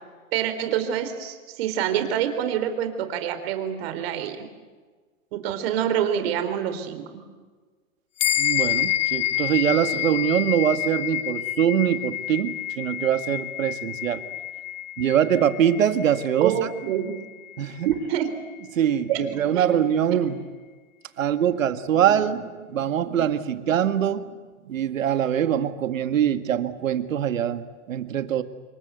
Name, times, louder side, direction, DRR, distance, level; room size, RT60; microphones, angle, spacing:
voice 1, 0.3-4.4 5.3-7.0 16.4-17.1 17.8-18.3 19.1-19.8 20.1-20.3 22.3-22.4 22.7-23.1 23.5-23.6 24.6-24.7, right 9 dB, 50° right, 9 dB, 4.2 m, -27 dB
sound 1, 8.2-17.9, left 14 dB, 65° left, 1.1 m, -29 dB
voice 2, 8.4-14.2 15.0-16.5 17.6-17.9 18.7-20.4 21.2-22.4 22.7-24.3 24.7-28.4, right 9 dB, 80° right, 10 dB, 2.1 m, -23 dB
28.0 x 23.0 x 8.4 m, 1.4 s
hypercardioid pair, 145°, 39 cm